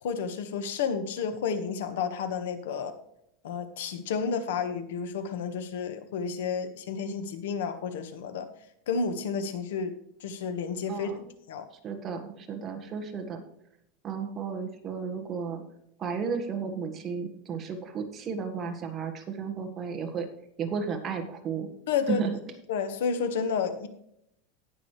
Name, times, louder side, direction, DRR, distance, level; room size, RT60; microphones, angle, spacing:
voice 1, 0.0-2.9 3.4-8.5 8.9-9.9 10.2-11.2 11.5-11.7 21.9-22.2 22.7-23.9, left 6 dB, 85° left, 10 dB, 1.4 m, -31 dB
voice 2, 10.9-11.3 11.8-13.4 14.0-15.6 16.0-20.3 20.6-21.7 22.1-22.3, right 6 dB, 25° right, 4 dB, 1.5 m, -33 dB
18.5 x 6.2 x 3.2 m, 0.77 s
supercardioid pair, 160°, 0 cm